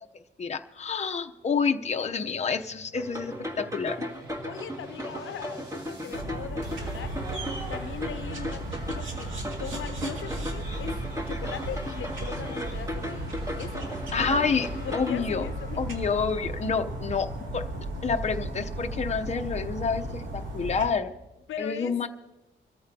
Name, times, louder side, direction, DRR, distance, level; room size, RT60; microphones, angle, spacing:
voice 1, 0.4-4.1 14.1-15.5 15.8-17.7 18.0-21.1 21.6-22.1, left 5 dB, 35° left, 5 dB, 0.7 m, -28 dB
sound 1, 1.7-6.2 6.6-18.2, equal, 65° right, 3.6 m, -50 dB
sound 2, 2.9-15.2, equal, 15° right, 1.9 m, -37 dB
voice 2, 4.4-7.2 7.7-9.3 9.6-11.0 11.3-14.0 14.8-15.8 21.5-22.0, left 8 dB, 85° left, 10 dB, 0.7 m, -39 dB
sound 3, 6.1-20.9, right 1 dB, 80° right, 2.3 m, -35 dB
24.0 x 14.0 x 2.8 m, 1.0 s
wide cardioid pair, 120°, 20 cm